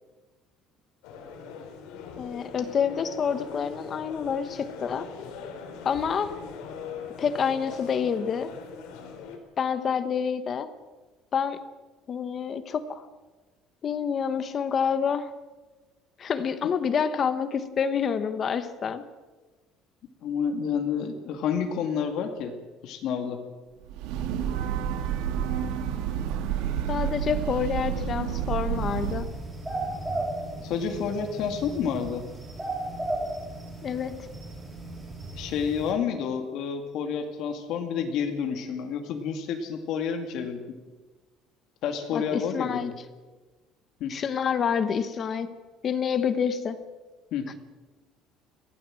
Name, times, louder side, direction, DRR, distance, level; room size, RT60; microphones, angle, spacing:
sound 1, 1.0-9.4, left 5 dB, 90° left, 4.0 m, -41 dB
voice 1, 2.2-5.1 5.8-6.4 7.2-8.5 9.6-10.7 11.3-11.6 12.1-13.0 13.8-15.3 16.2-19.0 26.9-29.3 33.8-34.2 42.1-42.9 44.1-45.5 45.8-46.8, left 7 dB, 30° left, 11 dB, 1.0 m, -28 dB
voice 2, 20.2-22.5 22.8-23.4 30.6-32.2 35.3-40.8 41.8-42.9 44.0-44.1 47.3-47.5, left 7 dB, 55° left, 5 dB, 2.3 m, -29 dB
Breathing / Train, 23.8-29.4, right 9 dB, 75° right, 2.0 m, -29 dB
sound 2, 28.8-35.9, right 2 dB, 10° right, 7.2 m, -35 dB
23.0 x 17.0 x 7.7 m, 1.3 s
cardioid pair, 175°, 0 cm